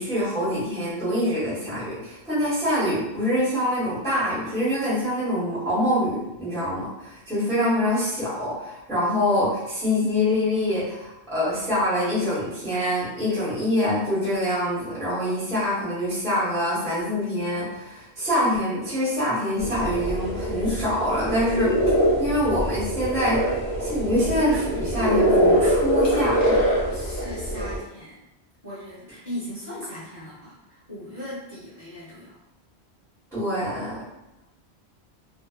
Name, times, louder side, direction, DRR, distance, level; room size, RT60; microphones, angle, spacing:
voice 1, 0.0-21.7 22.2-23.4 23.8-26.7 33.3-34.0, left 1 dB, 5° left, -11 dB, 0.9 m, -25 dB
sound 1, 19.6-27.8, equal, 45° left, 0.8 m, -23 dB
voice 2, 26.2-28.2 28.6-32.4, left 1 dB, 25° right, -9 dB, 1.0 m, -38 dB
2.5 x 2.0 x 2.3 m, 0.91 s
omnidirectional pair, 1.1 m